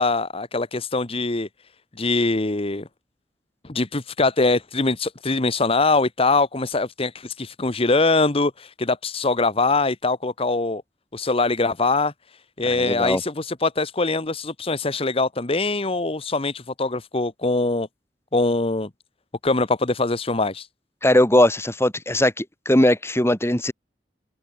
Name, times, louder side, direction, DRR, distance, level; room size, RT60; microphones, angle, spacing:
voice 1, 0.0-1.5 2.0-2.8 3.6-10.8 11.1-12.1 12.6-17.9 18.3-18.9 19.4-20.7, left 3 dB, 35° left, 1.2 m, -23 dB
voice 2, 12.8-13.2 21.0-23.7, left 1 dB, 15° left, 2.9 m, -19 dB
open air
head